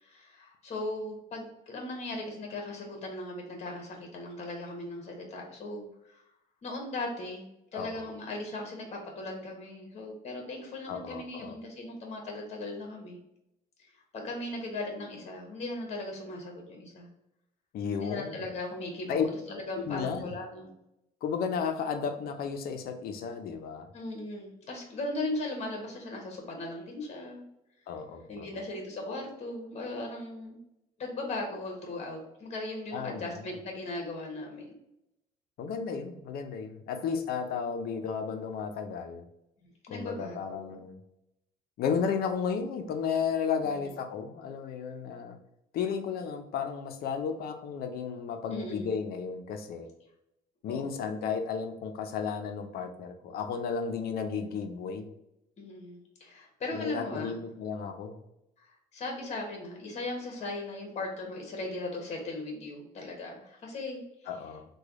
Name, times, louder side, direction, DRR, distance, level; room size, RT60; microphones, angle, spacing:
voice 1, 0.0-6.3 6.6-13.2 13.8-17.1 18.0-20.7 23.9-27.4 28.3-30.6 31.0-34.7 39.9-40.9 43.6-43.9 48.5-48.9 50.7-51.1 55.6-57.4 58.6-64.3, left 2 dB, 40° left, 1 dB, 1.1 m, -38 dB
voice 2, 7.7-8.1 10.9-11.5 17.7-18.5 19.1-19.2 19.8-20.2 21.2-23.9 27.9-28.5 32.9-33.4 35.6-39.2 39.9-41.0 41.8-45.4 45.7-49.9 50.6-55.1 56.7-58.2 64.3-64.7, left 6 dB, 65° left, 6 dB, 0.6 m, -33 dB
3.2 x 2.3 x 3.6 m, 0.85 s
cardioid pair, 110°, 17 cm